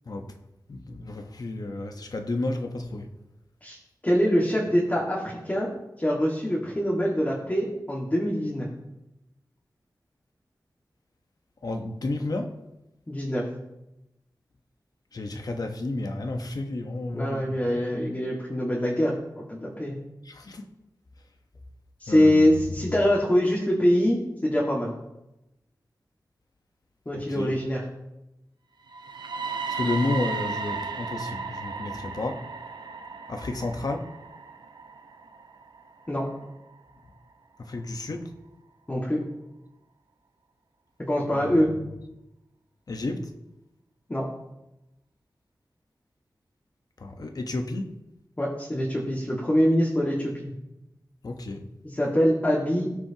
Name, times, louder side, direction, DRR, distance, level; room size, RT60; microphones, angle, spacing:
voice 1, 0.7-3.1 11.6-12.5 15.1-17.8 20.2-20.6 22.1-22.6 27.1-27.6 29.7-32.5 33.3-34.1 37.6-38.3 41.3-41.6 42.9-43.2 47.0-47.9 51.2-51.6, left 2 dB, 60° left, 5 dB, 1.1 m, -31 dB
voice 2, 4.0-5.7 6.0-8.7 13.1-13.5 17.1-20.0 22.0-24.9 27.1-27.8 36.1-36.3 38.9-39.2 41.0-41.7 44.1-44.3 48.4-50.5 51.8-52.9, equal, 20° left, -4 dB, 1.9 m, -24 dB
sound 1, 28.9-36.8, right 4 dB, 85° right, 0.8 m, -35 dB
18.5 x 6.2 x 2.9 m, 0.92 s
wide cardioid pair, 100°, 7 cm